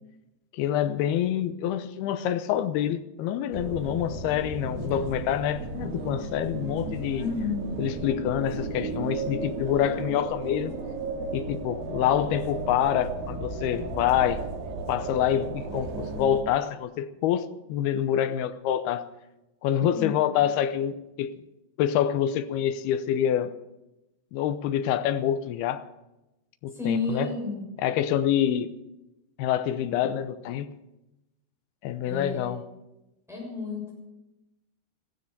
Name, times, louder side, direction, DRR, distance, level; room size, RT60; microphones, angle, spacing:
voice 1, 0.5-7.2 7.8-10.7 11.3-14.4 14.9-19.1 19.6-21.3 21.8-23.5 24.3-25.8 26.6-27.3 27.8-28.7 29.4-30.7 31.8-32.6, left 10 dB, 75° left, 2.5 m, -26 dB
sound 1, 3.5-16.4, right 3 dB, 75° right, 4.1 m, -34 dB
voice 2, 7.2-7.7 19.9-20.1 26.7-27.7 32.0-32.6 33.3-33.9, left 4 dB, ahead, 6.4 m, -31 dB
15.5 x 13.0 x 6.7 m
omnidirectional pair, 4.9 m